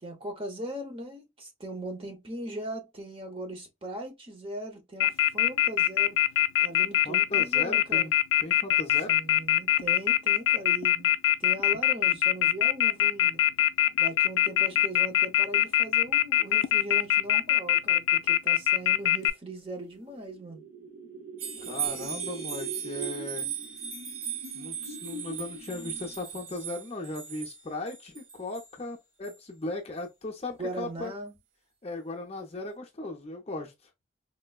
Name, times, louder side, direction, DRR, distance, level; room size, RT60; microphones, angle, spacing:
voice 1, 0.0-6.2 6.6-8.1 9.1-11.1 11.4-13.4 14.0-20.6 30.6-31.3, right 1 dB, 25° right, 0.8 m, -39 dB
Telephone, 5.0-19.3, left 13 dB, 80° left, 0.3 m, -22 dB
voice 2, 7.0-8.1 8.4-9.1 21.6-23.5 24.5-31.1 31.8-33.7, left 2 dB, 30° left, 0.5 m, -37 dB
sound 1, 19.9-26.4, right 2 dB, 70° right, 0.7 m, -43 dB
sound 2, 21.4-28.7 29.2-29.4, right 8 dB, 85° right, 1.4 m, -37 dB
4.3 x 2.1 x 2.3 m
head